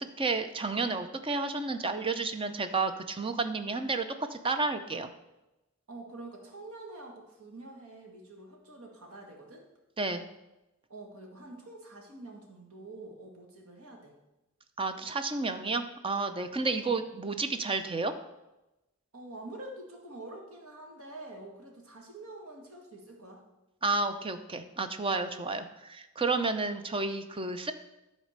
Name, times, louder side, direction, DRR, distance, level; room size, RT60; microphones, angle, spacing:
voice 1, 0.2-5.1 10.0-10.3 14.8-18.1 23.8-27.7, right 3 dB, 25° right, 9 dB, 0.6 m, -31 dB
voice 2, 5.9-9.7 10.9-14.2 19.1-23.4, right 2 dB, 85° right, 1 dB, 1.9 m, -46 dB
11.5 x 4.2 x 6.5 m, 0.97 s
head